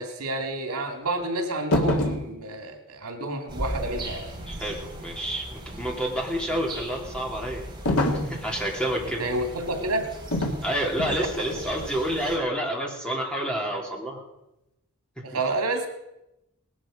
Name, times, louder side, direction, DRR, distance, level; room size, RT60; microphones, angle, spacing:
voice 1, 0.0-4.2 9.2-10.1 15.2-15.9, right 2 dB, 80° right, 4 dB, 2.6 m, -29 dB
sound 1, 1.7-2.3 7.9-8.4 10.3-10.6 11.0-11.3, left 1 dB, 75° left, 2.1 m, -24 dB
sound 2, 3.5-12.4, right 1 dB, 20° right, 3.5 m, -38 dB
voice 2, 4.5-7.6 8.2-9.2 10.6-14.2, right 1 dB, 5° left, -1 dB, 2.9 m, -29 dB
19.0 x 12.5 x 5.1 m, 0.89 s
head